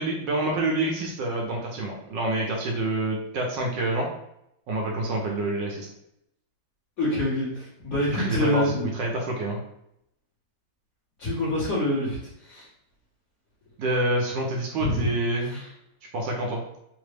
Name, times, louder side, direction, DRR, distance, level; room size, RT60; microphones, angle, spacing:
voice 1, 0.0-4.1 4.7-5.9 8.1-8.7 8.9-9.6 13.8-15.6 16.1-16.6, right 2 dB, 75° right, -1 dB, 1.3 m, -27 dB
voice 2, 7.0-8.8 11.2-12.7 14.8-15.1 15.4-15.7, left 1 dB, 55° left, -10 dB, 1.4 m, -26 dB
3.8 x 2.0 x 3.3 m, 0.79 s
omnidirectional pair, 2.0 m